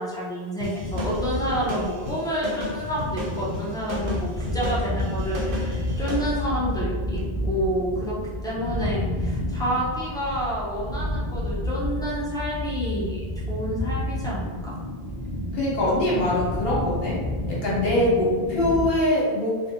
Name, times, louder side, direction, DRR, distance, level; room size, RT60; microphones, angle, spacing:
voice 1, 0.0-8.2 8.4-13.2 13.5-14.7, equal, 5° left, -7 dB, 0.3 m, -29 dB
sound 1, 0.6-6.3, equal, 65° right, 0.7 m, -33 dB
sound 2, 0.8-18.9, left 1 dB, 50° left, 0.6 m, -30 dB
voice 2, 15.5-17.2 17.5-19.7, left 1 dB, 70° left, -6 dB, 1.0 m, -23 dB
2.5 x 2.0 x 2.8 m, 1.5 s
omnidirectional pair, 1.0 m